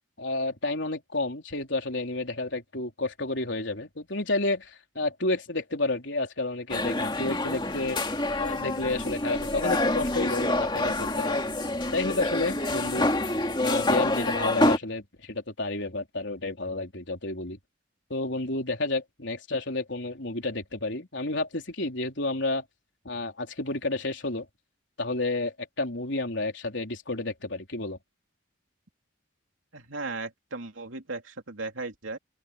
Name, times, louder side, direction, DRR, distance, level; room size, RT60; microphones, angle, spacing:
voice 1, 0.2-8.0 8.4-11.5 11.9-13.1 13.6-17.6 18.1-22.6 23.1-24.5 25.0-28.0, left 2 dB, 65° left, 3.8 m, -30 dB
sound 1, 6.7-14.8, left 2 dB, 25° left, 2.5 m, -27 dB
voice 2, 29.7-32.2, right 3 dB, 90° right, 3.1 m, -36 dB
open air
head